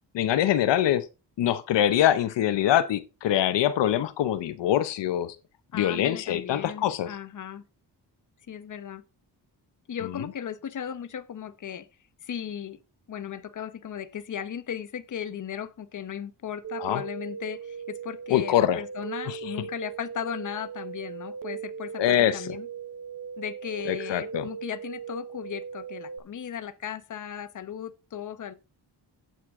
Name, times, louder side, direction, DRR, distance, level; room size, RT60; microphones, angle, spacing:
voice 1, 0.1-1.0 1.4-5.3 5.7-7.1 16.8-17.0 18.3-18.8 19.3-19.4 22.0-22.5 23.9-24.5, left 11 dB, 85° left, 0.8 m, -24 dB
voice 2, 5.7-7.6 8.5-9.0 9.9-11.9 12.2-12.8 13.1-22.7 23.4-28.5, left 9 dB, 45° left, 0.9 m, -36 dB
sound 1, 16.6-26.2, right 7 dB, 50° right, 1.0 m, -38 dB
9.3 x 7.7 x 3.6 m
cardioid pair, 110°, 42 cm